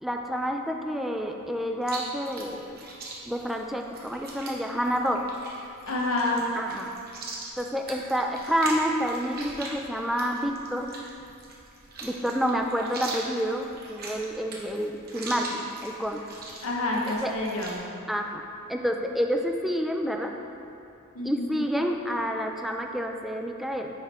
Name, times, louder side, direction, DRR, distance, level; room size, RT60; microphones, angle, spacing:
voice 1, 0.0-2.7 3.3-5.2 6.6-6.9 7.6-10.9 12.0-16.2 17.2-17.3 18.1-18.4 18.7-20.3 21.2-23.9, equal, ahead, 3 dB, 0.3 m, -28 dB
Chewing mastication, 1.8-17.8, right 3 dB, 45° right, 1.0 m, -41 dB
voice 2, 5.9-6.4 16.6-17.9 21.1-21.6, left 2 dB, 75° left, -2 dB, 1.1 m, -28 dB
5.8 x 5.4 x 4.3 m, 2.7 s
head